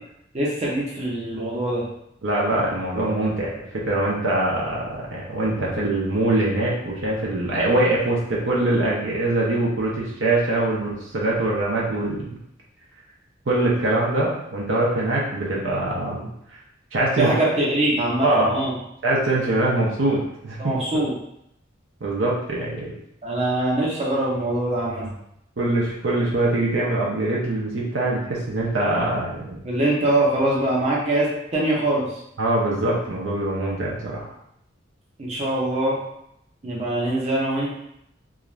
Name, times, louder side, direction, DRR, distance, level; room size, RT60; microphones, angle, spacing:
voice 1, 0.3-1.8 17.2-18.7 20.6-21.1 23.2-25.1 29.6-32.1 35.2-36.0 36.6-37.7, right 1 dB, 35° right, -5 dB, 0.7 m, -23 dB
voice 2, 2.2-12.3 13.5-16.2 16.9-17.3 18.2-18.6 19.0-20.7 22.0-22.9 25.6-29.6 32.4-34.3, right 2 dB, 70° right, -4 dB, 0.6 m, -23 dB
2.4 x 2.3 x 3.1 m, 0.77 s
head